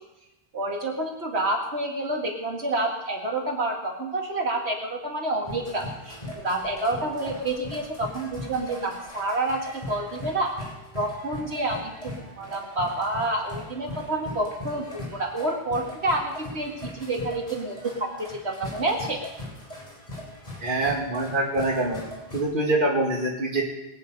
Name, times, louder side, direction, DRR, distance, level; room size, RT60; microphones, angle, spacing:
voice 1, 0.5-6.2 6.4-19.2, right 2 dB, 75° right, 1 dB, 2.3 m, -28 dB
sound 1, 5.4-22.4, left 1 dB, 40° left, 3.8 m, -40 dB
voice 2, 20.6-22.0 22.3-23.6, right 2 dB, 50° right, -2 dB, 2.2 m, -24 dB
21.5 x 8.9 x 5.4 m, 0.97 s
omnidirectional pair, 1.1 m